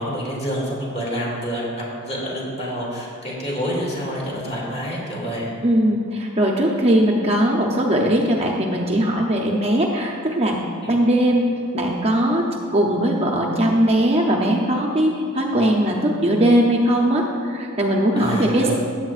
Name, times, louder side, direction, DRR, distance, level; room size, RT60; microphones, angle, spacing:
voice 1, 0.0-5.5 10.8-11.0 18.1-18.7, equal, 30° left, -5 dB, 2.4 m, -28 dB
voice 2, 5.6-10.6 10.9-11.5 11.7-18.7, right 1 dB, 30° right, -1 dB, 0.7 m, -19 dB
14.0 x 8.7 x 2.5 m, 2.3 s
head